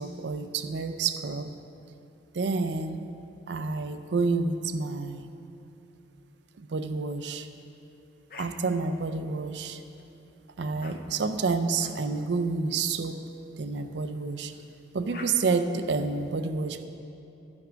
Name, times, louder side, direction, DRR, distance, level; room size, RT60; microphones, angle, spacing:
voice 1, 0.0-1.5 2.3-3.0 3.5-5.3 6.6-7.5 8.3-9.8 10.6-13.2 13.6-14.5 14.9-16.8, right 4 dB, 75° right, 9 dB, 0.5 m, -29 dB
sound 1, 8.3-8.5 9.5-10.0 10.8-11.0 11.8-12.0 12.8-13.0 14.5-14.6 15.1-15.3, left 3 dB, 50° left, 0.6 m, -46 dB
12.5 x 5.9 x 5.0 m, 2.9 s
head